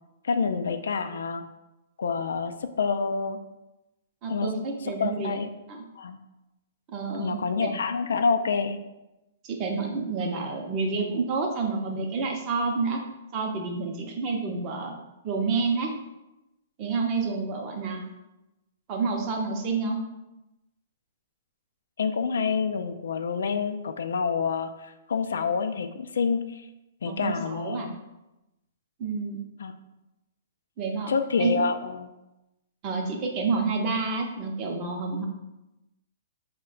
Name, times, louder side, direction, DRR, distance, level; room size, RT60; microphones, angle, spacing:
voice 1, 0.2-1.4 2.0-3.4 4.3-4.5 4.8-5.5 6.0-6.2 7.2-8.8 22.0-26.7 27.0-27.9 29.6-29.7 31.1-32.1, left 5 dB, 90° left, 8 dB, 0.3 m, -27 dB
voice 2, 4.2-5.3 5.7-5.8 6.9-7.7 9.4-13.0 13.3-14.9 15.2-15.9 16.8-18.0 18.9-20.0 27.0-27.9 29.0-29.4 30.8-31.1 31.4-31.6 32.8-35.2, right 4 dB, 25° right, 2 dB, 0.5 m, -29 dB
4.2 x 2.2 x 3.8 m, 0.96 s
hypercardioid pair, 165°, 0 cm